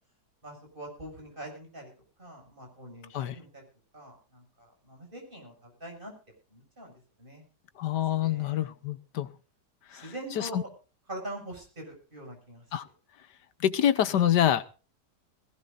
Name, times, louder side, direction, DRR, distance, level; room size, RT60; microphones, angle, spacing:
voice 1, 0.4-1.9 2.2-3.6 3.9-6.1 6.5-6.9 7.2-7.4 8.1-8.7 9.9-10.6 11.1-12.6 14.0-14.2, right 1 dB, 30° right, 1 dB, 7.4 m, -43 dB
voice 2, 7.8-9.3 9.9-10.6 12.7-12.8 13.6-14.7, left 10 dB, 85° left, 14 dB, 1.6 m, -26 dB
21.0 x 16.5 x 2.6 m, 0.34 s
omnidirectional pair, 1.8 m